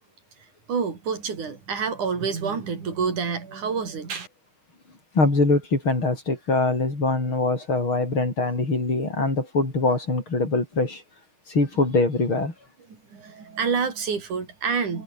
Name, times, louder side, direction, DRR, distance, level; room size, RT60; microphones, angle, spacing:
voice 1, 0.7-4.3 13.1-15.0, right 5 dB, 80° right, 5.9 m, -28 dB
voice 2, 5.1-11.0 11.5-12.5, left 2 dB, 40° left, 7.0 m, -23 dB
omnidirectional pair, 3.4 m